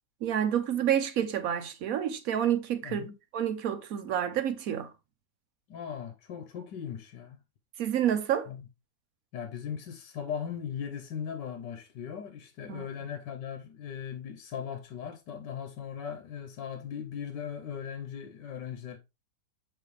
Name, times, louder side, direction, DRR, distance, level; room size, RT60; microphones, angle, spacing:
voice 1, 0.2-4.9 7.8-8.5 12.7-12.9, right 9 dB, 60° right, 1.0 m, -29 dB
voice 2, 2.8-3.2 5.7-7.4 8.5-8.6 9.3-19.0, left 8 dB, 70° left, 1.5 m, -38 dB
7.1 x 4.1 x 3.2 m
omnidirectional pair, 2.1 m